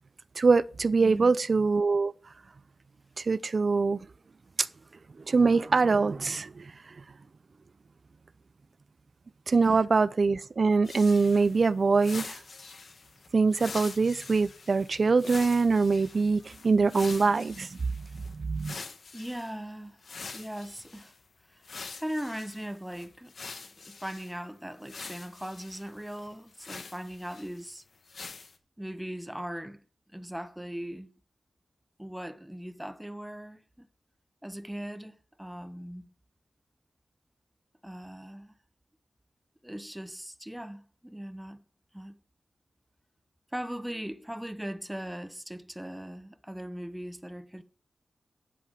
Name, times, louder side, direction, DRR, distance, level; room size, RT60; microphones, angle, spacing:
voice 1, 0.4-2.1 3.2-4.0 4.6-4.7 5.3-6.7 9.5-12.4 13.3-17.8 18.3-18.8, right 4 dB, 45° right, 0.5 m, -24 dB
voice 2, 1.0-1.4 9.7-9.8 19.1-20.0 20.3-21.1 21.5-21.6 21.9-27.8 28.8-29.8 30.1-31.1 32.0-33.9 34.4-36.1 37.8-38.5 39.6-41.6 41.9-42.1 43.5-47.6, equal, 5° right, 0.8 m, -39 dB
sound 1, 10.8-19.5 20.0-21.2 21.6-24.3 24.8-27.7 28.1-28.6, left 4 dB, 55° left, 1.3 m, -45 dB
11.0 x 7.7 x 5.0 m
wide cardioid pair, 120°, 0 cm